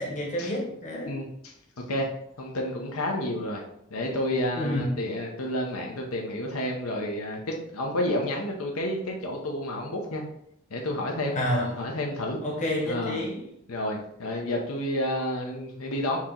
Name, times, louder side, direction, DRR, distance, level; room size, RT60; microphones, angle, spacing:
voice 1, 0.0-1.1 4.6-4.9 11.3-11.8 12.4-13.4, left 1 dB, 35° left, -1 dB, 1.0 m, -29 dB
voice 2, 1.1-2.1 2.4-3.6 3.9-10.2 10.7-11.4 11.8-12.4 12.8-13.2 13.7-16.2, left 1 dB, 85° left, 0 dB, 0.8 m, -30 dB
4.5 x 2.9 x 3.8 m, 0.76 s
head